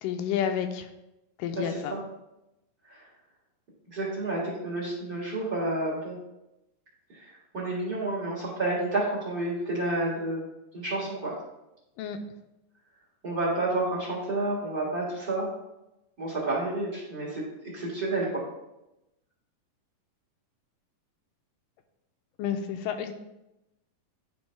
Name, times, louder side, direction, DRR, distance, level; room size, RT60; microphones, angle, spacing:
voice 1, 0.0-0.9 1.4-2.0 12.0-12.2 22.4-23.1, left 8 dB, 85° left, 7 dB, 2.2 m, -30 dB
voice 2, 1.5-2.0 2.9-3.0 3.9-6.2 7.1-10.4 10.7-11.3 13.2-15.5 16.2-17.4 17.7-18.4, right 2 dB, 35° right, -4 dB, 1.7 m, -30 dB
10.5 x 3.8 x 3.3 m, 0.91 s
omnidirectional pair, 3.9 m